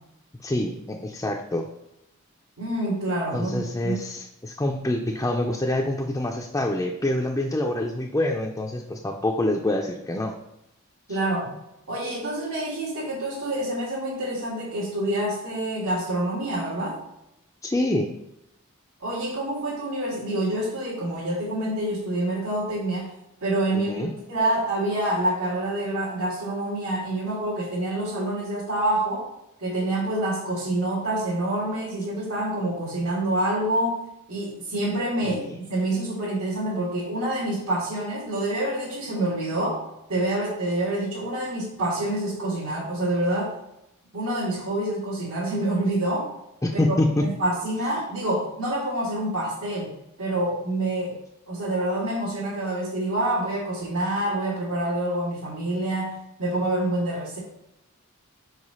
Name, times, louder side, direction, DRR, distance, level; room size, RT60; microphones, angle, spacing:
voice 1, 0.4-1.7 3.3-10.3 17.6-18.1 23.9-24.1 35.3-35.5 46.6-47.3, left 1 dB, 15° left, 1 dB, 0.4 m, -26 dB
voice 2, 2.6-4.0 11.1-11.5 11.9-17.0 19.0-23.1 23.4-29.3 29.6-34.0 34.3-43.5 44.1-46.3 46.9-49.9 50.2-51.2 51.5-57.4, right 1 dB, 80° right, -8 dB, 2.1 m, -27 dB
4.8 x 4.7 x 5.5 m, 0.83 s
head